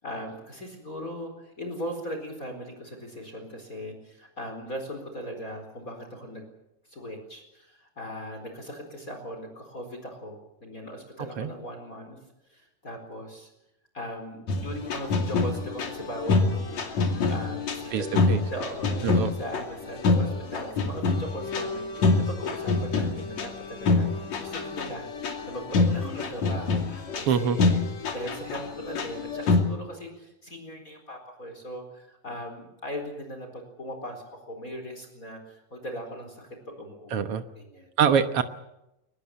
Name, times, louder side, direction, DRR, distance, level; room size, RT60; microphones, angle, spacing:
voice 1, 0.0-6.4 6.9-12.2 12.5-13.5 13.9-16.8 17.3-27.8 28.1-37.3 37.5-37.9, equal, 25° left, 4 dB, 4.5 m, -39 dB
sound 1, 14.5-29.6, left 3 dB, 60° left, 3.8 m, -26 dB
voice 2, 17.9-18.4 19.0-19.3 27.3-27.6 37.1-37.4 38.0-38.4, right 7 dB, 60° right, 9 dB, 1.7 m, -24 dB
23.0 x 20.5 x 7.7 m, 0.88 s
omnidirectional pair, 3.7 m